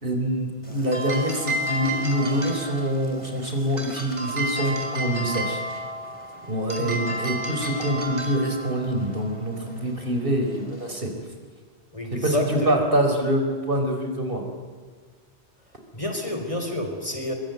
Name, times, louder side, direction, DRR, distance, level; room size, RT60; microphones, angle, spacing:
voice 1, 0.0-5.6 6.5-11.1 12.1-14.4, right 1 dB, 55° right, 4 dB, 4.7 m, -25 dB
sound 1, 0.6-11.0, right 1 dB, 30° right, 4.2 m, -33 dB
voice 2, 11.9-12.7 15.9-17.3, equal, 30° left, 4 dB, 4.3 m, -29 dB
24.0 x 23.5 x 9.3 m, 1.5 s
omnidirectional pair, 1.1 m